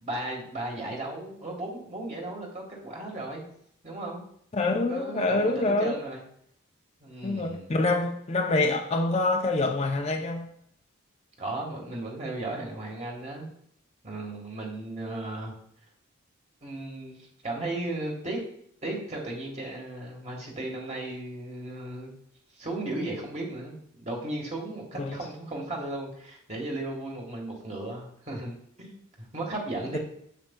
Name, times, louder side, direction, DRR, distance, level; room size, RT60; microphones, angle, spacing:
voice 1, 0.0-3.4 3.8-4.2 4.9-6.2 7.0-7.7 11.4-13.5 14.0-15.5 16.6-18.4 18.8-22.1 22.6-30.0, right 2 dB, 35° right, 1.4 m, -35 dB
voice 2, 4.5-6.0 7.2-10.5 25.0-25.2, left 2 dB, 30° left, 0.5 m, -26 dB
7.4 x 7.4 x 2.2 m
head